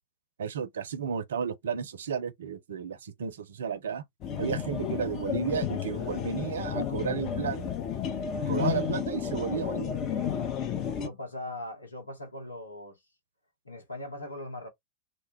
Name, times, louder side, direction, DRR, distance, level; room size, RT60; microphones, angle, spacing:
voice 1, 0.4-4.0 4.4-7.9 8.5-9.9, right 7 dB, 65° right, 0.4 m, -33 dB
sound 1, 4.2-11.1, left 8 dB, 35° left, 0.5 m, -32 dB
voice 2, 11.0-13.0 13.6-14.7, left 1 dB, 80° left, 0.9 m, -40 dB
2.1 x 2.0 x 3.1 m
figure-of-eight pair, 90°, 0 cm